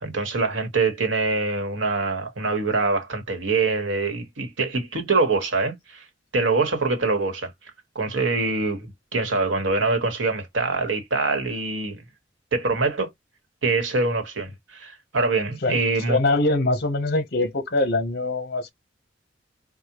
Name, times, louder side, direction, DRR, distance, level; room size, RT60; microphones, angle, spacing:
voice 1, 0.0-6.0 6.3-7.5 7.9-12.0 12.5-13.1 13.6-16.2, right 3 dB, 90° right, 1.2 m, -24 dB
voice 2, 16.1-18.7, left 2 dB, 55° left, 0.9 m, -23 dB
4.8 x 2.2 x 2.9 m
head